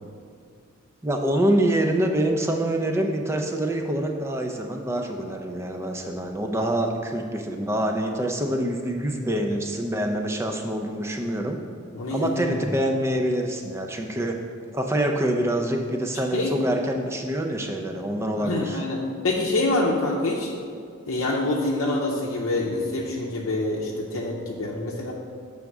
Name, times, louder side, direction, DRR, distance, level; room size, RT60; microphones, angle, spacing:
voice 1, 1.0-11.6 12.1-14.4 14.7-18.8, right 1 dB, 15° right, 3 dB, 0.4 m, -26 dB
voice 2, 11.9-12.6 16.3-16.6 18.4-20.5 21.1-25.1, left 2 dB, 75° left, -4 dB, 0.7 m, -26 dB
6.4 x 3.5 x 6.0 m, 2.2 s
head